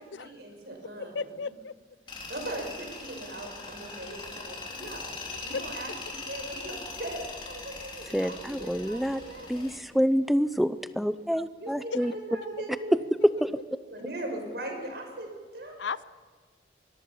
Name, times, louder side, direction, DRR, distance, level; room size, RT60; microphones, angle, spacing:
voice 1, 0.0-1.4 2.3-9.7 11.6-13.0 13.9-15.7, right 1 dB, 65° right, 3 dB, 5.6 m, -40 dB
voice 2, 1.0-1.7 5.3-5.6 11.9-12.0 15.8-16.0, left 5 dB, 80° left, 18 dB, 0.6 m, -34 dB
Tools, 2.1-9.8, left 3 dB, 25° left, 3.6 m, -41 dB
voice 3, 8.1-9.2 9.5-12.1 13.4-13.5, equal, ahead, 12 dB, 0.6 m, -27 dB
24.5 x 22.0 x 5.6 m, 1.5 s
head